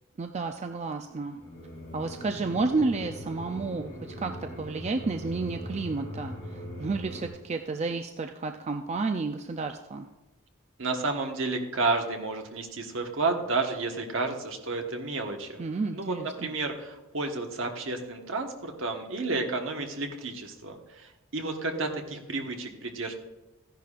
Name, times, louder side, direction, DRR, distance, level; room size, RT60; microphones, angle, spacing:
voice 1, 0.2-1.4 1.9-10.1 15.6-16.5, right 3 dB, 30° right, 5 dB, 0.4 m, -31 dB
sound 1, 1.4-7.3, left 1 dB, 15° left, 4.2 m, -40 dB
voice 2, 10.8-15.6 15.9-23.1, right 3 dB, 70° right, 3 dB, 1.3 m, -31 dB
15.0 x 10.5 x 2.5 m, 1.0 s
head